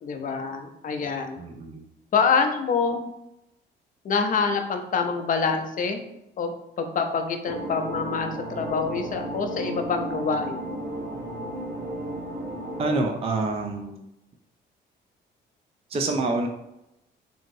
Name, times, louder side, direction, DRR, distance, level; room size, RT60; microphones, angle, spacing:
voice 1, 0.0-1.4 2.1-3.1 4.0-6.0 6.4-10.7, left 5 dB, 45° left, 5 dB, 0.5 m, -26 dB
voice 2, 1.4-1.8 12.8-14.1 15.9-16.5, right 3 dB, 30° right, 3 dB, 0.4 m, -27 dB
sound 1, 7.4-13.0, right 1 dB, 60° right, 0.9 m, -34 dB
2.9 x 2.7 x 2.6 m, 0.86 s
cardioid pair, 90°, 20 cm